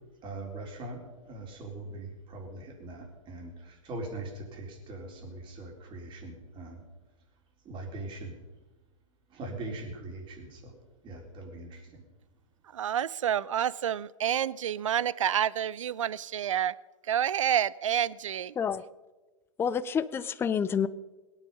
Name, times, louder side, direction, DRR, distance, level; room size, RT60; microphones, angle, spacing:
voice 1, 0.2-6.9 7.6-8.4 9.3-12.0, right 2 dB, 30° right, 2 dB, 3.9 m, -41 dB
voice 2, 12.7-16.7 17.1-18.5, right 10 dB, 70° right, 21 dB, 0.5 m, -28 dB
voice 3, 19.6-20.9, left 7 dB, 15° left, 15 dB, 0.5 m, -28 dB
20.5 x 9.4 x 5.4 m, 1.2 s
figure-of-eight pair, 105°, 17 cm